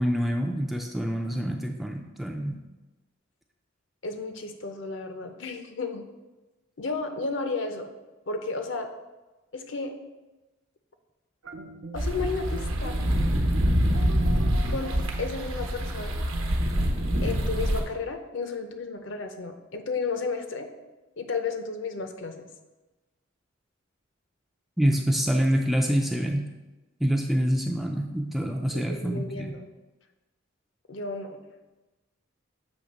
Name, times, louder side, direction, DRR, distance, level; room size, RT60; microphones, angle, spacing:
voice 1, 0.0-2.6 24.8-26.5 27.0-29.5, equal, ahead, 2 dB, 0.3 m, -26 dB
voice 2, 4.0-6.0 6.8-7.9 8.3-8.9 9.5-10.0 11.9-13.0 14.7-16.2 17.2-20.7 21.2-22.5 28.7-29.6 30.9-31.4, left 4 dB, 60° left, 7 dB, 0.6 m, -33 dB
sound 1, 11.4-16.7, right 2 dB, 70° right, 0.5 m, -42 dB
sound 2, 12.0-17.8, equal, 85° right, 0.9 m, -25 dB
7.0 x 3.1 x 5.2 m, 1.1 s
head